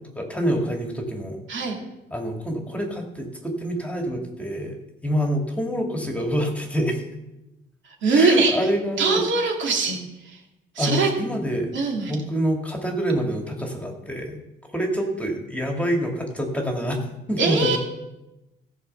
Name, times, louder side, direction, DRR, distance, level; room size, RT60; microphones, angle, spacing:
voice 1, 0.2-1.4 2.1-4.8 5.0-7.0 8.1-9.2 10.8-11.7 12.1-14.4 14.7-17.0 17.3-17.8, equal, 5° left, 1 dB, 2.0 m, -26 dB
voice 2, 8.0-8.5 9.0-10.0 10.3-10.4 10.8-11.1 11.7-12.2 17.4-17.8, right 4 dB, 70° right, 1 dB, 2.5 m, -21 dB
14.0 x 5.0 x 6.6 m, 0.97 s
cardioid pair, 90°, 20 cm